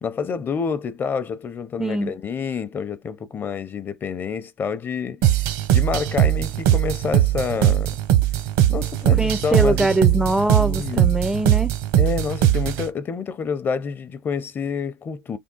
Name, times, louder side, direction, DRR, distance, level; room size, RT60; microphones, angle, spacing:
voice 1, 0.0-5.2 5.7-7.9 8.7-9.9 10.6-11.1 11.9-15.4, left 6 dB, 35° left, 0.6 m, -28 dB
voice 2, 1.8-2.1 9.2-11.7, right 2 dB, 10° right, 0.3 m, -22 dB
sound 1, 5.2-12.9, right 12 dB, 75° right, 0.8 m, -20 dB
3.5 x 2.3 x 3.8 m
supercardioid pair, 100°, 6 cm